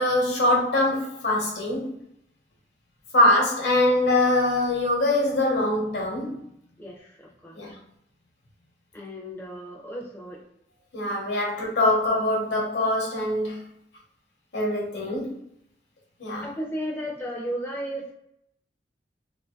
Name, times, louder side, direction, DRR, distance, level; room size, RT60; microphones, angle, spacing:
voice 1, 0.0-1.9 3.1-6.4 7.6-7.8 10.9-13.6 14.5-15.4 16.2-16.5, left 1 dB, 75° left, -2 dB, 0.9 m, -23 dB
voice 2, 6.8-7.6 8.9-10.4 15.1-15.2 16.4-18.1, equal, 10° left, -3 dB, 0.4 m, -34 dB
2.6 x 2.6 x 2.2 m, 0.76 s
head